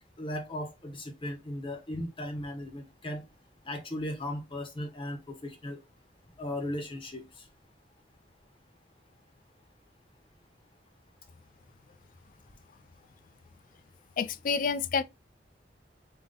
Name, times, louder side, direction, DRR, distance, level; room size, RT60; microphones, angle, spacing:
voice 1, 0.2-3.2 3.7-5.8 6.4-7.2, left 1 dB, 30° left, 0.8 m, -37 dB
voice 2, 14.2-15.0, left 5 dB, 50° left, 0.4 m, -28 dB
3.9 x 2.8 x 3.7 m
head